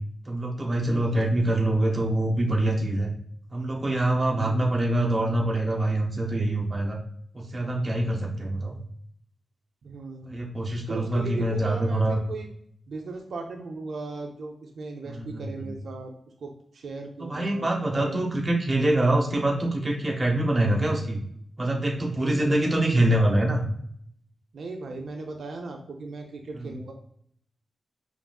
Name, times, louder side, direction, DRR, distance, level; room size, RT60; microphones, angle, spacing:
voice 1, 0.3-3.1 3.5-7.0 7.3-8.8 10.3-12.2 15.0-15.7 17.2-21.2 21.6-23.7 26.5-26.7, right 1 dB, 20° right, -1 dB, 0.8 m, -25 dB
voice 2, 0.8-1.3 4.4-4.8 9.8-10.5 10.9-12.5 12.9-16.1 16.4-18.2 22.1-23.1 24.5-26.9, right 3 dB, 65° right, 3 dB, 0.5 m, -37 dB
4.9 x 3.2 x 2.3 m, 0.67 s
wide cardioid pair, 180°, 0 cm